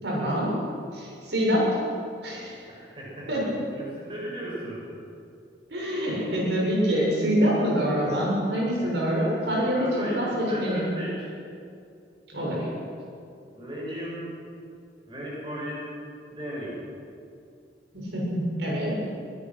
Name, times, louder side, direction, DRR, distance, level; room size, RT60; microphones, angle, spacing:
voice 1, 0.0-0.6 0.9-1.7 2.2-2.6 3.3-3.6 5.7-10.8 12.3-12.7 17.9-19.0, equal, 85° right, -4 dB, 7.1 m, -25 dB
voice 2, 2.7-4.8 8.8-8.9 9.5-11.3 13.5-14.3 15.0-15.8 16.3-16.8, right 1 dB, 30° right, -5 dB, 7.5 m, -36 dB
22.5 x 19.0 x 6.4 m, 2.5 s
head